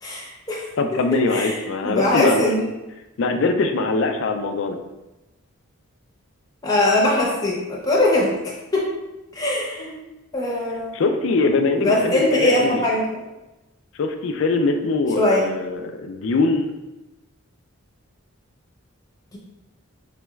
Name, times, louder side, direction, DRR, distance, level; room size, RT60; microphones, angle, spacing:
voice 1, 0.0-2.6 6.6-8.9 9.3-10.0 10.3-11.0 11.8-13.2 15.2-15.5 19.3-19.4, left 1 dB, 15° left, -4 dB, 0.7 m, -21 dB
voice 2, 0.8-2.7 3.2-4.8 10.9-12.9 13.9-16.7, left 3 dB, 60° left, 6 dB, 0.3 m, -22 dB
4.0 x 2.3 x 3.1 m, 1.0 s
head